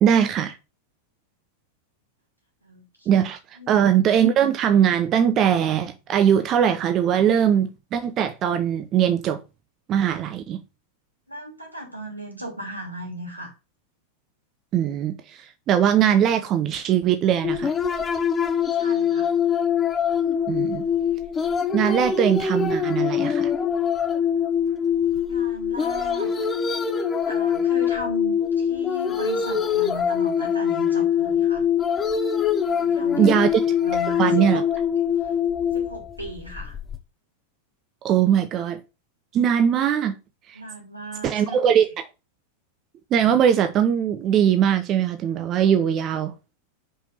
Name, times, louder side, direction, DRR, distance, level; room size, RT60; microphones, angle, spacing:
voice 1, 0.0-0.6 3.1-3.4 3.7-9.4 9.9-10.6 14.7-17.7 20.5-20.9 21.7-23.5 33.2-33.6 34.2-34.6 38.0-38.8 39.3-40.1 40.5-40.6 41.2-41.9 43.1-46.3, right 9 dB, 30° right, 0.7 m, -20 dB
voice 2, 11.3-13.5 18.7-19.3 25.3-26.3 27.2-31.6 32.7-33.3 33.8-34.6 35.7-36.8 40.5-41.6, equal, 85° right, 2.9 m, -36 dB
sound 1, 17.4-37.0, left 7 dB, 20° left, 1.0 m, -23 dB
5.6 x 5.2 x 5.7 m
figure-of-eight pair, 90°, 0 cm